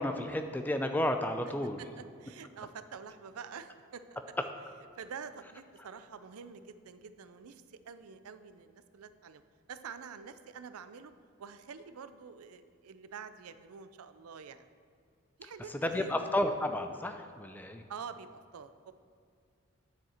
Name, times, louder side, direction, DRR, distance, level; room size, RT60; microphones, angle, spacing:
voice 1, 0.0-1.8 15.8-17.8, left 1 dB, 10° left, 7 dB, 0.4 m, -32 dB
voice 2, 1.8-4.2 5.0-9.4 9.7-11.1 11.4-14.7 15.4-16.1 17.9-18.9, right 6 dB, 90° right, 12 dB, 0.5 m, -47 dB
9.2 x 7.4 x 4.4 m, 2.3 s
head